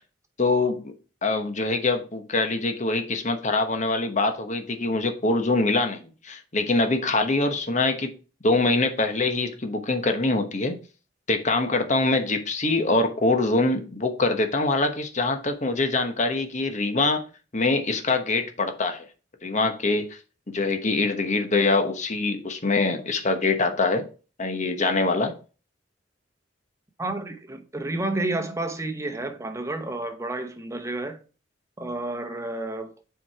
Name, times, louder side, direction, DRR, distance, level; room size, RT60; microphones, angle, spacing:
voice 1, 0.4-0.9 1.2-8.1 8.4-10.8 11.3-17.2 17.5-19.0 19.4-20.0 20.5-24.1 24.4-25.3, left 3 dB, 40° left, 1.1 m, -24 dB
voice 2, 27.0-31.2 31.8-32.9, right 2 dB, 15° right, 1.0 m, -30 dB
7.1 x 4.7 x 4.7 m
head